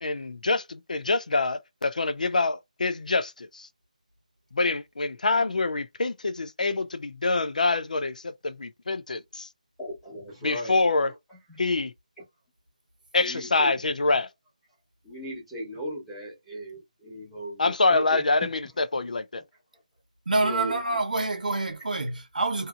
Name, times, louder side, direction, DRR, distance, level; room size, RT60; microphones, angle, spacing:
voice 1, 0.0-3.7 4.5-9.5 10.4-11.1 11.6-11.9 13.1-14.3 17.6-19.4, left 3 dB, 75° left, 0.5 m, -26 dB
voice 2, 9.8-10.7 11.5-11.6 13.2-13.8 15.0-18.5 20.4-20.8, equal, ahead, 1.0 m, -37 dB
voice 3, 20.3-22.7, right 2 dB, 80° right, 1.0 m, -27 dB
2.7 x 2.7 x 2.4 m
hypercardioid pair, 180°, 4 cm